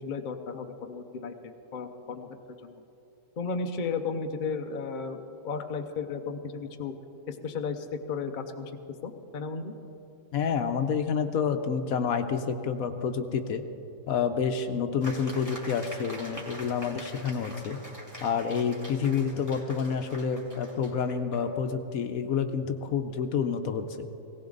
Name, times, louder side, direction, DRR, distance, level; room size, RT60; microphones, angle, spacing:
voice 1, 0.0-2.3 2.6-2.8 3.4-6.9 7.3-8.7 9.0-9.7, left 5 dB, 40° left, 6 dB, 0.7 m, -34 dB
voice 2, 10.3-13.6 14.1-17.8 18.2-24.1, left 6 dB, 75° left, 8 dB, 1.2 m, -29 dB
sound 1, 15.0-21.4, equal, 10° right, 2.3 m, -45 dB
17.5 x 17.5 x 3.9 m, 2.9 s
omnidirectional pair, 1.6 m